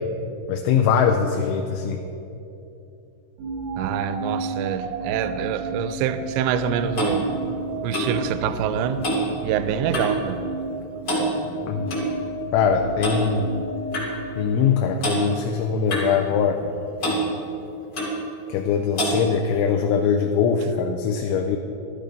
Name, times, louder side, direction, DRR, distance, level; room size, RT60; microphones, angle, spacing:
voice 1, 0.5-2.0 11.7-11.9 12.5-13.6 14.4-16.8 18.5-21.6, left 6 dB, 80° left, 4 dB, 2.9 m, -22 dB
sound 1, 3.4-15.5, right 2 dB, 70° right, 1.8 m, -33 dB
voice 2, 3.8-7.3 7.8-9.1 9.4-10.4, right 8 dB, 85° right, 11 dB, 2.8 m, -26 dB
Clock, 6.4-10.3 10.5-10.8 11.0-12.1 13.0-13.2 13.9-14.1 15.0-15.2 15.9-16.7 17.0-17.2 17.9-18.2 19.0-19.2, right 1 dB, 35° left, 2.3 m, -27 dB
12.0 x 11.0 x 5.1 m, 2.9 s
omnidirectional pair, 5.6 m